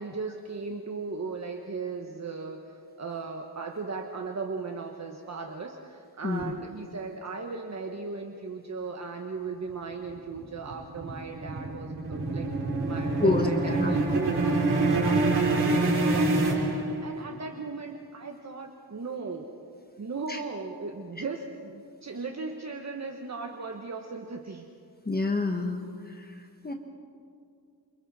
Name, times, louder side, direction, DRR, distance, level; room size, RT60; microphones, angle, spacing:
voice 1, 0.0-12.5 12.8-19.5 20.0-24.7, right 4 dB, 45° right, 3 dB, 1.3 m, -37 dB
sound 1, 10.1-17.3, right 2 dB, 75° right, 3.7 m, -26 dB
voice 2, 25.0-26.7, left 3 dB, 25° left, 3 dB, 1.3 m, -28 dB
29.0 x 28.0 x 4.3 m, 2.4 s
wide cardioid pair, 145°, 39 cm